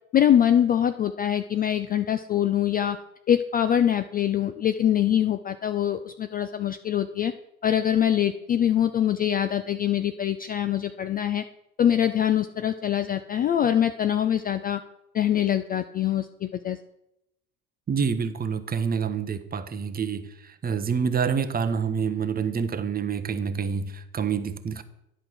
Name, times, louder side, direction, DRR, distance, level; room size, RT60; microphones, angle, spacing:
voice 1, 0.1-3.0 3.3-7.3 7.6-11.4 11.8-14.8 15.1-16.8, left 10 dB, 25° left, 10 dB, 0.3 m, -24 dB
voice 2, 17.9-24.8, right 6 dB, 20° right, 11 dB, 0.8 m, -27 dB
10.5 x 5.1 x 5.9 m, 0.84 s
hypercardioid pair, 70°, 43 cm